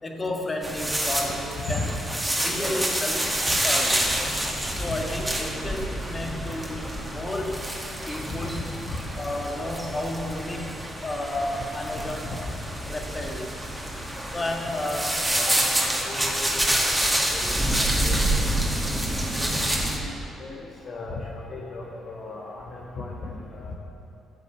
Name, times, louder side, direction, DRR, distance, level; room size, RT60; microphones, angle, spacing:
voice 1, 0.0-1.9 2.4-3.3 3.6-4.1 4.8-7.7 8.1-8.6 9.2-12.3 12.8-13.5 14.3-15.7, left 1 dB, 25° left, 1 dB, 1.8 m, -32 dB
sound 1, 0.6-20.0, right 1 dB, 10° right, 2.2 m, -27 dB
voice 2, 16.0-17.0 17.3-17.5 18.0-18.3 19.4-19.5 20.0-20.1 20.4-20.6 20.8-23.7, left 3 dB, 50° left, -2 dB, 1.3 m, -37 dB
14.0 x 7.3 x 6.7 m, 2.8 s
figure-of-eight pair, 45°, 0 cm